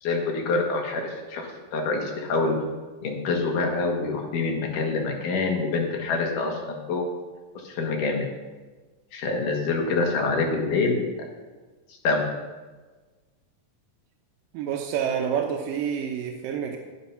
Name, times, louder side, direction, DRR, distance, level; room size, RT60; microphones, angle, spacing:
voice 1, 0.0-2.6 3.0-7.0 7.6-8.3 9.1-11.1 12.0-12.2, left 3 dB, 70° left, 1 dB, 3.1 m, -26 dB
voice 2, 14.5-16.8, right 8 dB, 85° right, 2 dB, 2.6 m, -28 dB
10.5 x 10.0 x 5.6 m, 1.3 s
omnidirectional pair, 3.8 m